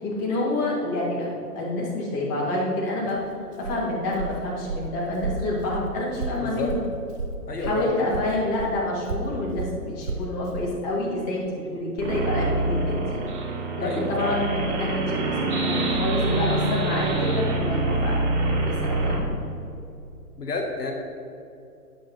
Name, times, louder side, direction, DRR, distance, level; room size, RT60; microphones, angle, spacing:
voice 1, 0.0-3.2 3.6-6.8 7.6-13.2 13.8-18.2 18.6-19.4, left 1 dB, 25° left, -4 dB, 2.6 m, -28 dB
Walk footsteps, 3.0-7.8 8.1-10.7, right 3 dB, 75° right, 1.2 m, -33 dB
voice 2, 7.5-8.0 13.8-14.5 20.4-20.9, left 3 dB, 80° left, 2 dB, 1.5 m, -29 dB
sound 1, 12.0-19.2, right 2 dB, 45° right, 2.6 m, -25 dB
13.0 x 8.9 x 3.3 m, 2.6 s
hypercardioid pair, 135°, 47 cm